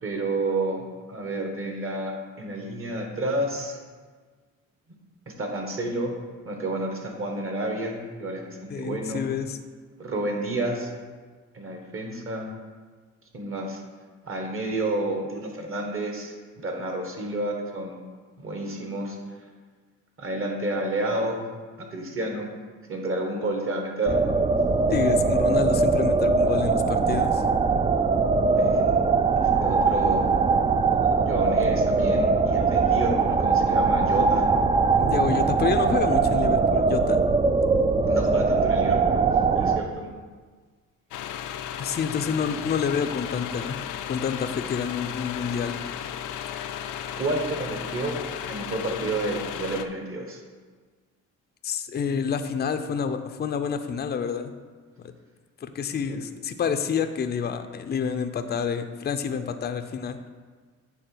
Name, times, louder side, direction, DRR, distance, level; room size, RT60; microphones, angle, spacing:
voice 1, 0.0-3.8 5.4-6.2 6.4-9.2 10.0-10.9 11.5-12.5 13.3-13.8 14.2-18.0 18.4-19.2 20.2-21.4 21.9-22.5 22.9-24.2 25.3-25.5 28.6-29.0 29.6-30.3 31.2-34.5 38.1-39.2 39.6-40.1 42.2-42.4 47.2-48.2 48.5-50.4, right 2 dB, 45° right, 2 dB, 1.6 m, -30 dB
voice 2, 8.7-9.6 24.9-27.4 35.0-37.2 41.8-43.8 44.1-45.7 51.6-54.5 55.0-55.1 55.6-60.2, left 6 dB, 35° left, 8 dB, 0.5 m, -28 dB
sound 1, 24.0-39.8, right 4 dB, 20° right, 0.4 m, -21 dB
sound 2, 41.1-49.9, left 9 dB, 85° left, 0.5 m, -34 dB
9.1 x 3.7 x 6.1 m, 1.5 s
cardioid pair, 90°, 30 cm